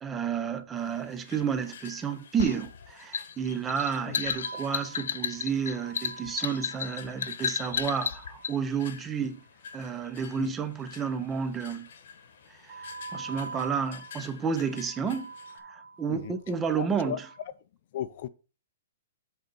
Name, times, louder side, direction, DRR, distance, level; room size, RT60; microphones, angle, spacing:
voice 1, 0.0-9.4 9.7-11.9 12.5-17.3, right 6 dB, 10° right, 0.5 m, -31 dB
sound 1, 0.8-15.6, left 7 dB, 60° left, 1.1 m, -50 dB
sound 2, 2.4-8.6, left 7 dB, 80° left, 0.7 m, -32 dB
sound 3, 4.4-9.8 12.7-17.5, right 4 dB, 70° right, 1.1 m, -46 dB
voice 2, 16.8-17.2 17.9-18.3, left 10 dB, 40° left, 0.5 m, -35 dB
7.9 x 3.8 x 5.3 m
hypercardioid pair, 170°, 0 cm